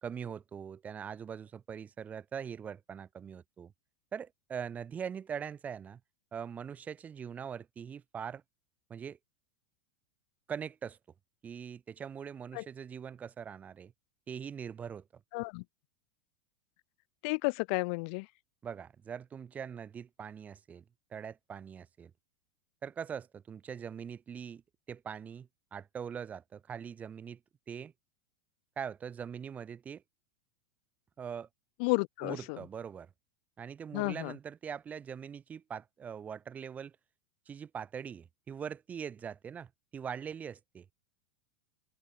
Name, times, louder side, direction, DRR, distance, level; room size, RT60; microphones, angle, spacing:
voice 1, 0.0-3.7 4.1-6.0 6.3-8.4 8.9-9.2 10.5-11.0 11.4-13.9 14.3-15.0 18.6-20.8 21.1-22.1 22.8-24.6 24.9-27.4 27.7-27.9 28.8-30.0 31.2-31.5 32.2-33.1 33.6-36.9 37.5-40.9, right 7 dB, 25° right, 1.7 m, -42 dB
voice 2, 15.3-15.6 17.2-18.3 31.8-32.6 33.9-34.3, left 32 dB, 55° left, 1.3 m, -32 dB
hypercardioid pair, 90°, 6 cm